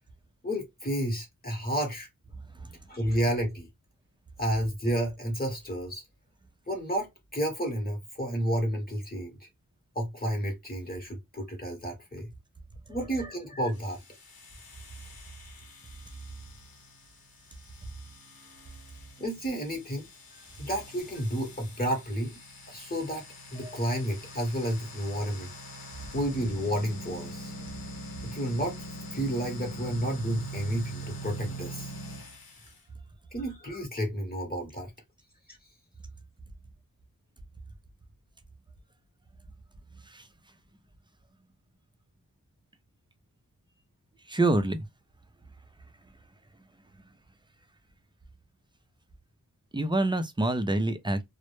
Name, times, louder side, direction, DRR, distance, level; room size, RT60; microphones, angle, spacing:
voice 1, 0.4-2.1 2.9-3.7 4.4-6.0 6.7-9.5 9.9-12.3 12.9-14.0 19.2-20.1 20.6-22.4 22.7-23.2 23.5-25.5 26.1-27.5 28.2-28.8 29.1-31.9 33.3-34.9 35.5-35.6, equal, 25° left, 0.9 m, -31 dB
sound 1, 13.7-32.8, right 1 dB, 90° left, 0.8 m, -43 dB
voice 2, 44.3-44.8 49.7-51.2, right 2 dB, 15° right, 0.4 m, -26 dB
2.1 x 2.0 x 2.9 m
wide cardioid pair, 65°, 35 cm